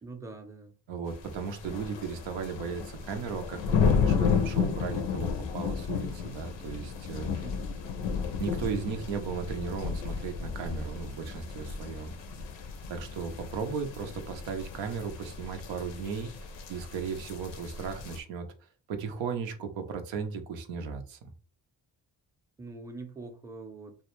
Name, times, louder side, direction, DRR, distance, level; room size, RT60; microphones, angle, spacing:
voice 1, 0.0-0.7 7.4-7.8 22.6-24.0, right 3 dB, 5° right, 0.5 m, -44 dB
voice 2, 0.9-7.3 8.4-12.2 12.9-18.5 18.9-21.2, right 5 dB, 90° right, 0.5 m, -36 dB
sound 1, 1.1-18.2, left 6 dB, 90° left, 0.5 m, -33 dB
2.3 x 2.1 x 2.9 m
supercardioid pair, 50°, 44 cm